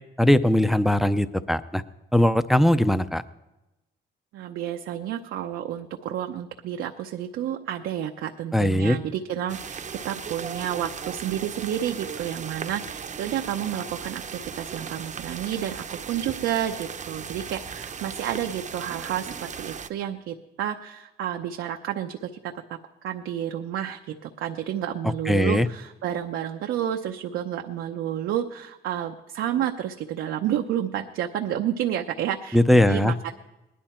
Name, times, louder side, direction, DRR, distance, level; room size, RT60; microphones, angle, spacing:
voice 1, 0.2-1.8 2.1-3.2 8.5-9.0 25.3-25.7 32.5-33.1, left 1 dB, ahead, 13 dB, 0.5 m, -20 dB
voice 2, 4.3-22.5 23.0-33.3, right 10 dB, 85° right, 3 dB, 0.7 m, -30 dB
sound 1, 9.5-19.9, right 6 dB, 40° right, 0.7 m, -37 dB
19.0 x 11.0 x 4.4 m, 0.99 s
cardioid pair, 90°, 20 cm